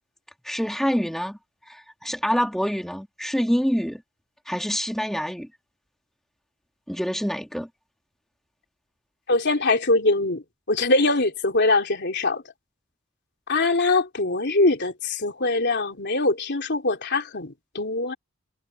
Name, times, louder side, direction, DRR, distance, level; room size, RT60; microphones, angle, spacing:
voice 1, 0.4-1.4 1.7-4.0 4.5-5.5 6.9-7.7, equal, ahead, 1.8 m, -26 dB
voice 2, 9.3-12.4 13.5-18.1, left 2 dB, 50° left, 3.4 m, -23 dB
head